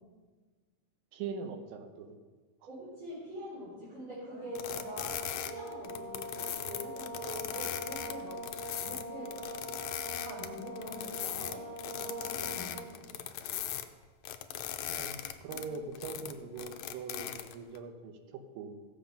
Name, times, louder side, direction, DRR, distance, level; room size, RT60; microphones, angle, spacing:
voice 1, 1.1-2.2 7.5-7.6 14.9-18.8, right 5 dB, 85° right, 6 dB, 2.6 m, -42 dB
voice 2, 2.7-6.2 6.6-8.5 8.8-9.4 10.1-13.0 15.5-15.6, equal, 50° right, -12 dB, 4.9 m, -44 dB
sound 1, 4.3-13.0, equal, 10° left, 1.9 m, -43 dB
sound 2, 4.6-13.9 14.2-17.8, left 11 dB, 80° left, 1.7 m, -39 dB
15.5 x 7.4 x 5.2 m, 1.4 s
omnidirectional pair, 3.9 m